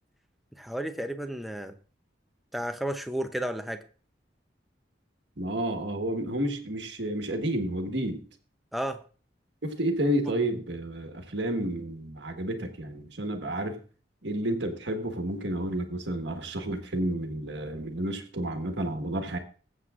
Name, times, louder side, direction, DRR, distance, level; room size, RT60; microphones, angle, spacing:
voice 1, 0.6-1.8 2.5-3.8 8.7-9.0, right 1 dB, ahead, 0.6 m, -32 dB
voice 2, 5.4-8.2 9.6-13.8 14.2-19.4, right 1 dB, 75° right, 1.4 m, -30 dB
21.0 x 7.6 x 2.5 m
head